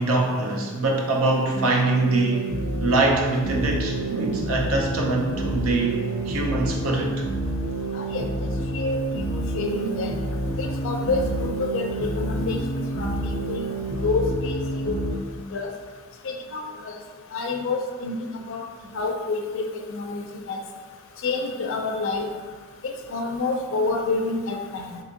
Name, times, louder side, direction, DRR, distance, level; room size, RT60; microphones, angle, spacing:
voice 1, 0.0-2.4 2.8-7.1, right 2 dB, 80° right, 0 dB, 0.6 m, -23 dB
sound 1, 1.5-15.1, right 1 dB, 40° right, 0.7 m, -29 dB
voice 2, 7.9-10.1 10.6-13.6 14.0-15.0 15.5-15.7 16.2-17.0 17.3-18.7 18.9-20.6 21.2-22.3 22.8-25.0, left 3 dB, 65° left, 2 dB, 0.4 m, -28 dB
3.5 x 2.7 x 2.7 m, 1.4 s
head